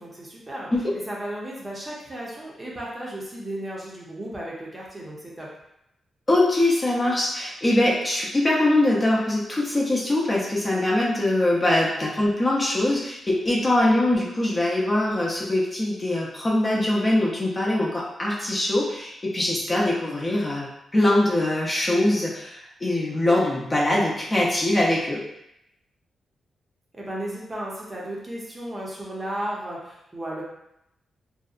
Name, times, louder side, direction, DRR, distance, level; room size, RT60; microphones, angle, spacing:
voice 1, 0.0-0.7 1.1-5.5 26.9-30.4, right 1 dB, 20° right, -4 dB, 0.6 m, -34 dB
voice 2, 6.3-25.2, left 1 dB, 25° left, -5 dB, 0.6 m, -22 dB
2.6 x 2.1 x 2.4 m, 0.82 s
cardioid pair, 105°, 0 cm